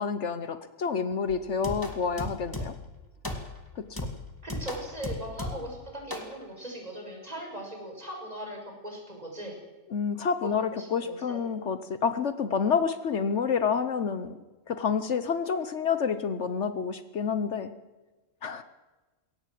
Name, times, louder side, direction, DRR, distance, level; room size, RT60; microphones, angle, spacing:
voice 1, 0.0-2.7 3.9-4.0 9.9-14.4 14.7-17.7 18.4-18.6, left 6 dB, 65° left, 11 dB, 1.2 m, -28 dB
sound 1, 1.3-2.9 3.2-3.6 4.0-5.8 6.1-6.3, left 1 dB, 15° left, 2.3 m, -36 dB
voice 2, 4.4-9.5 10.4-11.4, right 1 dB, 30° right, 1 dB, 6.2 m, -39 dB
22.0 x 17.5 x 7.6 m, 1.2 s
omnidirectional pair, 1.3 m